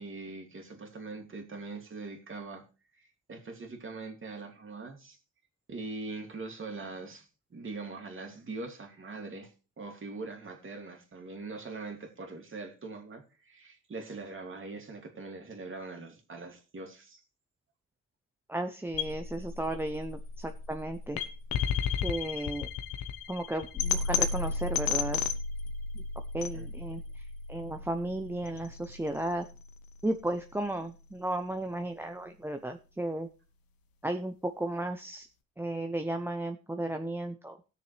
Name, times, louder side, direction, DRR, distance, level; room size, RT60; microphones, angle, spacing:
voice 1, 0.0-2.6 2.9-5.2 5.7-17.2 26.5-26.7, right 3 dB, 30° right, 2.7 m, -42 dB
voice 2, 18.5-21.2 22.0-22.7 23.3-25.2 25.9-26.0 26.3-29.5 30.0-33.3 34.0-35.3 35.6-37.6, right 1 dB, 5° right, 0.7 m, -34 dB
sound 1, 18.9-31.0, left 6 dB, 65° left, 1.2 m, -34 dB
17.0 x 6.7 x 3.4 m
supercardioid pair, 85°, 38 cm